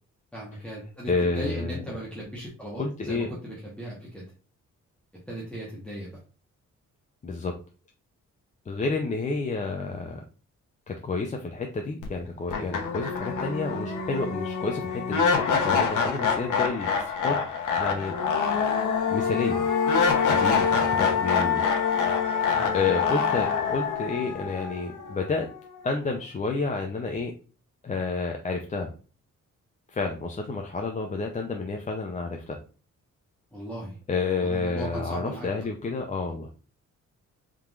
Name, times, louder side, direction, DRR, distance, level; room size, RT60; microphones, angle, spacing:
voice 1, 0.3-4.2 5.3-6.2 22.5-22.7 33.5-34.0 34.4-35.7, right 1 dB, 5° left, -6 dB, 1.1 m, -37 dB
voice 2, 1.1-1.8 2.8-3.3 7.2-7.5 8.7-10.2 10.9-15.3 15.6-17.4 17.8-18.1 19.1-19.7 20.3-21.6 22.1-22.4 22.7-25.5 25.8-27.3 27.8-28.9 29.9-32.6 34.1-36.5, left 4 dB, 25° left, 2 dB, 0.5 m, -30 dB
sound 1, 12.0-12.1 12.5-25.6, left 6 dB, 80° left, 0.9 m, -25 dB
4.4 x 3.7 x 2.4 m, 0.37 s
wide cardioid pair, 140°, 30 cm